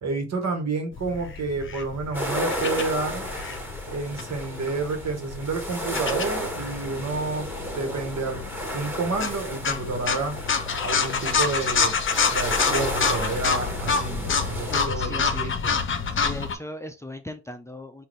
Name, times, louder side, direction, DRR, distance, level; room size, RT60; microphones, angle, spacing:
voice 1, 0.0-3.3 3.9-8.4 8.7-10.3 10.8-12.0 12.3-15.7, right 3 dB, 55° right, 1.6 m, -29 dB
sound 1, 1.0-16.6, left 5 dB, 40° left, 0.8 m, -28 dB
sound 2, 2.1-14.9, equal, 5° right, 1.6 m, -33 dB
sound 3, 5.7-16.5, left 10 dB, 75° left, 0.6 m, -44 dB
voice 2, 14.7-15.6 16.1-18.1, left 1 dB, 10° left, 0.6 m, -38 dB
3.8 x 2.7 x 3.2 m
supercardioid pair, 60°, 32 cm